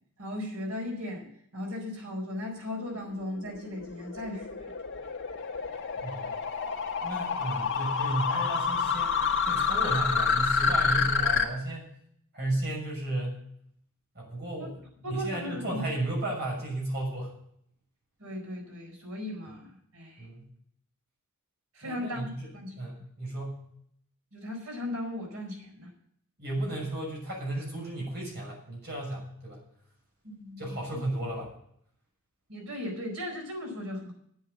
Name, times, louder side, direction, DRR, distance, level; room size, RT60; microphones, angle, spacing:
voice 1, 0.2-4.7 14.6-14.7 15.0-15.8 18.2-20.3 21.7-22.8 24.3-25.9 30.2-31.0 32.5-34.1, left 1 dB, 75° right, 1 dB, 4.7 m, -37 dB
sound 1, 3.4-11.5, left 5 dB, 55° left, 1.8 m, -28 dB
voice 2, 6.0-6.4 7.0-9.1 9.4-11.9 12.3-13.4 14.2-14.8 15.0-17.3 20.2-20.5 21.8-22.5 22.8-23.6 26.4-29.6 30.6-31.5, right 1 dB, 50° right, -2 dB, 6.8 m, -33 dB
9.2 x 8.8 x 8.4 m, 0.68 s
head